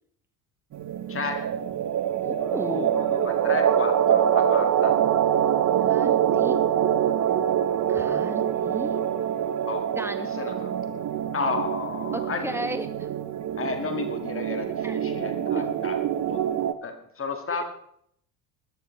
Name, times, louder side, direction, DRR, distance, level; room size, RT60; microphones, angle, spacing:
sound 1, 0.7-16.7, right 9 dB, 40° right, 1.1 m, -25 dB
voice 1, 1.1-1.5 2.7-5.0 9.7-9.9 10.4-10.7 11.3-12.6 13.6-16.0 16.3-16.5 16.8-17.6, left 4 dB, 30° left, 5 dB, 2.0 m, -32 dB
voice 2, 2.2-2.9 5.9-6.7 7.9-9.0 10.0-10.4 12.1-13.1 14.8-15.0 15.6-15.7, right 1 dB, 5° right, 8 dB, 1.8 m, -34 dB
20.0 x 13.0 x 3.3 m, 0.68 s
figure-of-eight pair, 55°, 45 cm